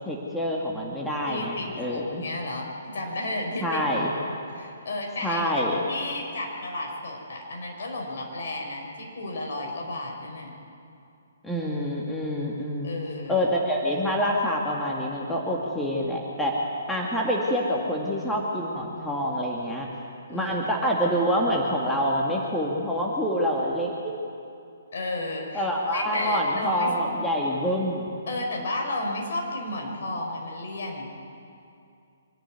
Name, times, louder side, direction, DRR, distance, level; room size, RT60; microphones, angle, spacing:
voice 1, 0.1-2.2 3.6-4.1 5.2-5.8 11.4-12.9 13.3-16.5 16.9-19.9 20.3-24.1 25.5-28.2, equal, 5° left, -3 dB, 2.1 m, -26 dB
voice 2, 1.3-3.8 4.2-5.5 5.8-10.5 12.8-13.5 20.3-20.6 24.9-25.7 25.9-27.3 28.3-31.1, left 2 dB, 55° left, 0 dB, 5.1 m, -33 dB
24.5 x 11.5 x 9.4 m, 2.5 s
figure-of-eight pair, 130°, 0 cm